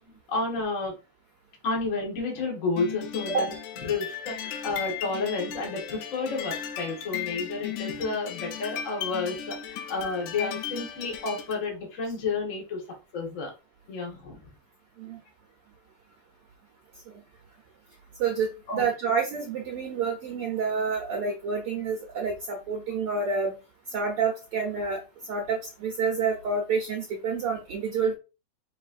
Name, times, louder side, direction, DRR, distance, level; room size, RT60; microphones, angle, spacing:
voice 1, 0.3-0.9 1.6-3.4 3.8-12.8 13.1-13.5 13.9-14.4 18.7-18.9, left 3 dB, 40° left, -1 dB, 1.1 m, -31 dB
sound 1, 2.8-11.6, left 9 dB, 85° left, 2.3 m, -36 dB
voice 2, 18.2-23.5 23.9-25.0 25.3-28.1, right 5 dB, 60° right, -1 dB, 1.6 m, -28 dB
6.1 x 3.2 x 2.5 m, 0.30 s
omnidirectional pair, 3.5 m